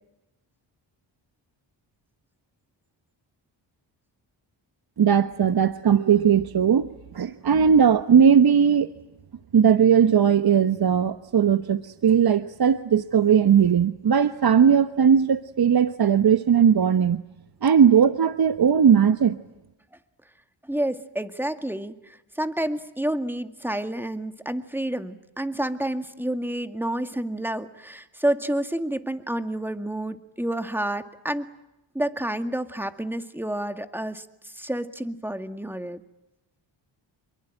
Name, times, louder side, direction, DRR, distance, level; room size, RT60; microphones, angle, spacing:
voice 1, 5.0-6.9 7.1-8.9 9.5-17.2 17.6-19.4, right 7 dB, 50° right, 11 dB, 1.1 m, -18 dB
voice 2, 20.6-31.5 31.9-36.0, right 1 dB, 5° right, 9 dB, 2.0 m, -29 dB
27.5 x 23.0 x 9.0 m, 0.91 s
cardioid pair, 70°, 47 cm